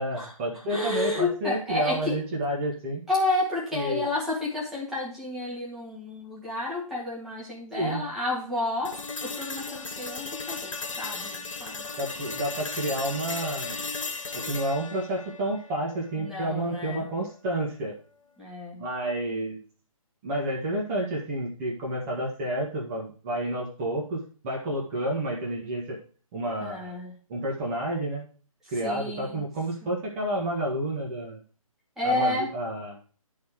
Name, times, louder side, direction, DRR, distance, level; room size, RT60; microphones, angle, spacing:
voice 1, 0.0-3.0 3.7-4.1 7.7-8.1 12.0-13.8 14.3-17.9 18.8-19.6 20.2-26.0 26.3-26.9 27.3-28.2 28.7-31.4 32.0-33.0, right 1 dB, 20° right, -2 dB, 1.6 m, -30 dB
voice 2, 0.7-2.2 3.1-11.9 16.2-17.1 18.4-18.9 26.6-27.2 28.8-29.5 32.0-32.5, left 2 dB, ahead, -6 dB, 1.8 m, -30 dB
sound 1, 8.8-16.9, left 4 dB, 65° left, 1.7 m, -36 dB
11.0 x 4.1 x 4.8 m, 0.40 s
figure-of-eight pair, 145°, 18 cm